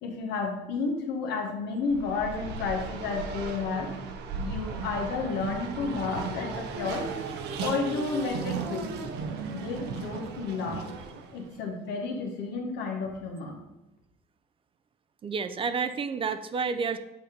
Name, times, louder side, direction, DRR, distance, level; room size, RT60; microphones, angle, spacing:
voice 1, 0.0-3.9 4.4-7.1 7.6-9.2 9.5-10.9 11.3-13.6, left 4 dB, 85° left, 1 dB, 1.3 m, -32 dB
Race car auto racing, 1.8-11.5, right 4 dB, 85° right, 0.7 m, -36 dB
voice 2, 15.2-17.0, right 5 dB, 30° right, 10 dB, 0.4 m, -30 dB
7.6 x 2.8 x 5.2 m, 0.96 s
cardioid pair, 110°, 17 cm